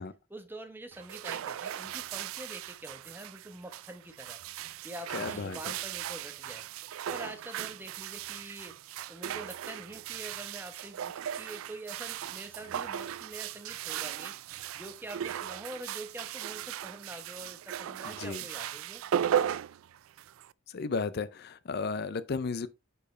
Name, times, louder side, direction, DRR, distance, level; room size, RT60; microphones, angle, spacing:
voice 1, 0.3-4.4 4.8-6.7 7.1-8.8 9.1-14.4 14.7-19.0, right 1 dB, 10° right, 0.9 m, -45 dB
sound 1, 0.9-20.5, right 10 dB, 90° right, 0.3 m, -37 dB
voice 2, 5.1-5.7 18.0-18.4 20.7-22.7, left 4 dB, 50° left, 0.5 m, -34 dB
9.8 x 4.6 x 3.2 m
head